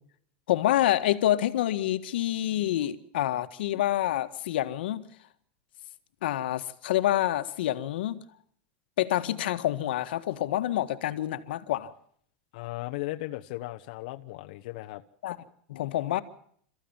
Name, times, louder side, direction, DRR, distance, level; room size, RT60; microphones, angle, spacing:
voice 1, 0.5-5.0 6.2-8.2 9.0-11.9 15.2-15.4 15.7-16.2, left 13 dB, 90° left, 1.7 m, -27 dB
voice 2, 12.5-15.0, left 18 dB, 55° left, 1.1 m, -36 dB
28.5 x 14.5 x 7.4 m
supercardioid pair, 175°, 5 cm